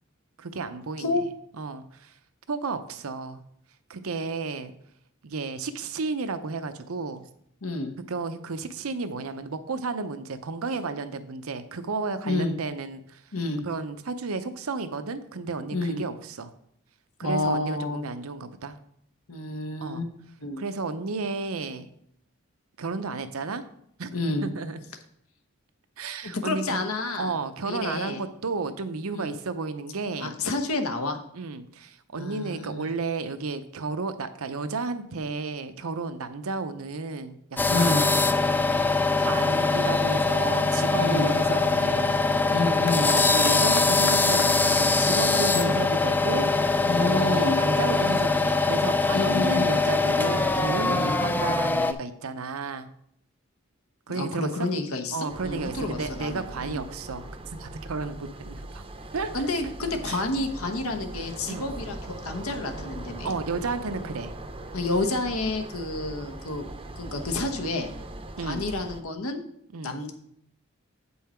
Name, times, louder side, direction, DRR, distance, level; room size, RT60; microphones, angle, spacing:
voice 1, 0.4-1.2 1.6-2.1 2.5-3.4 3.9-4.7 5.2-7.2 8.1-13.2 13.6-16.5 17.2-18.8 19.8-20.0 20.6-21.9 22.8-23.7 24.0-24.8 26.0-26.8 27.2-30.3 31.3-38.2 39.1-42.2 43.0-52.9 54.1-54.7 55.1-58.8 59.1-59.3 59.6-59.7 60.1-60.2 60.9-61.0 61.5-61.7 63.2-64.3 68.4-68.7 69.7-70.0, right 4 dB, 80° right, 10 dB, 0.7 m, -32 dB
voice 2, 7.6-7.9 12.2-12.5 13.3-13.6 15.7-16.0 17.2-18.0 19.3-20.1 20.4-20.6 24.1-24.5 26.4-27.3 27.6-28.2 29.1-29.3 30.2-31.2 32.2-32.9 37.7-38.0 41.0-41.3 42.5-43.1 45.5-45.7 46.8-47.6 49.1-49.7 50.9-51.2 54.1-56.8 59.3-63.3 64.7-66.7 67.0-67.9 68.4-69.4 69.8-70.1, left 2 dB, 85° left, 6 dB, 1.1 m, -29 dB
sound 1, 37.6-51.9, left 3 dB, 10° left, 0.3 m, -23 dB
sound 2, 42.9-50.1, left 3 dB, 60° left, 1.1 m, -41 dB
sound 3, 55.3-69.0, right 1 dB, 25° right, 0.6 m, -40 dB
8.4 x 5.5 x 4.4 m, 0.70 s
head